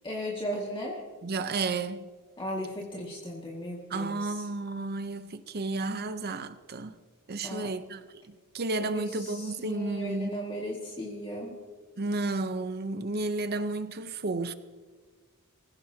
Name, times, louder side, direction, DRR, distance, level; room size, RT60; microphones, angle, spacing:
voice 1, 0.0-1.0 2.4-4.4 7.4-7.7 8.8-9.0 9.4-11.5, equal, 25° left, 2.0 m, -36 dB
voice 2, 1.2-2.1 3.9-6.9 7.3-10.4 12.0-14.5, right 3 dB, 45° right, 0.8 m, -32 dB
25.5 x 15.5 x 2.9 m
head